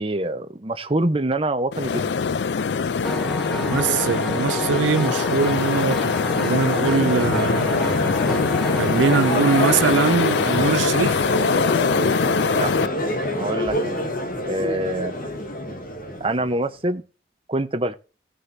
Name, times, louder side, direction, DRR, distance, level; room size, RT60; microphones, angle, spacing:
voice 1, 0.0-2.2 12.5-12.7 13.4-14.0 14.4-15.1 16.2-17.1 17.5-17.9, right 1 dB, 30° right, 0.9 m, -25 dB
sound 1, 1.7-12.9, left 5 dB, 65° left, 0.4 m, -23 dB
Piano, 3.0-10.7, equal, ahead, 0.9 m, -31 dB
voice 2, 3.6-8.2 8.7-11.2, right 5 dB, 80° right, 0.4 m, -22 dB
Crowd, 6.5-16.6, equal, 45° left, 2.2 m, -27 dB
16.5 x 6.5 x 2.7 m
head